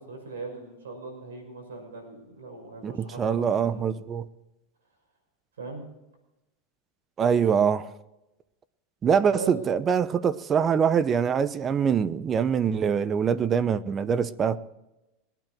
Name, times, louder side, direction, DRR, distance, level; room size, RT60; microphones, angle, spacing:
voice 1, 0.0-4.0 5.6-5.8 9.3-9.5, right 3 dB, 90° right, 5.7 m, -39 dB
voice 2, 2.8-4.3 7.2-7.9 9.0-14.6, right 7 dB, 30° right, 0.8 m, -24 dB
22.0 x 9.2 x 4.5 m
hypercardioid pair, 115°, 0 cm